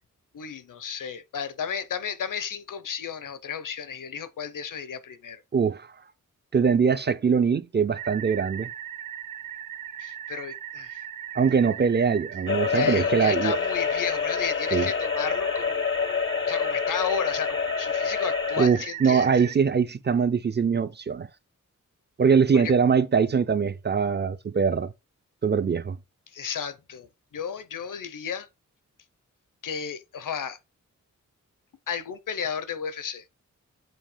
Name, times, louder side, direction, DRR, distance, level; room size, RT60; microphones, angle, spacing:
voice 1, 0.3-5.4 10.0-11.0 12.7-19.4 22.5-22.7 26.3-28.5 29.6-30.6 31.9-33.2, left 7 dB, 85° left, 0.8 m, -33 dB
voice 2, 5.5-5.9 6.5-8.7 11.4-13.6 14.7-14.9 18.6-21.3 22.2-24.9 25.4-26.0, right 6 dB, 35° right, 0.4 m, -22 dB
sound 1, 8.0-19.6, right 11 dB, 80° right, 0.8 m, -39 dB
sound 2, 12.5-18.7, left 6 dB, 40° left, 0.4 m, -27 dB
7.6 x 2.8 x 5.0 m
wide cardioid pair, 140°, 31 cm